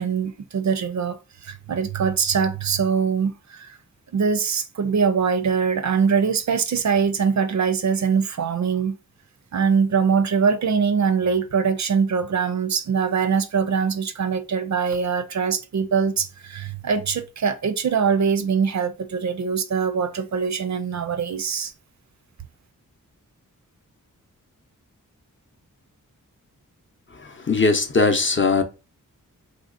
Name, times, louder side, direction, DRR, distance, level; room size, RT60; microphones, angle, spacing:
voice 1, 0.0-3.8 4.1-9.0 9.5-21.7, right 6 dB, 55° right, 0.4 m, -23 dB
voice 2, 27.5-28.6, left 3 dB, 35° left, 0.6 m, -19 dB
3.7 x 2.8 x 2.5 m
wide cardioid pair, 85°, 33 cm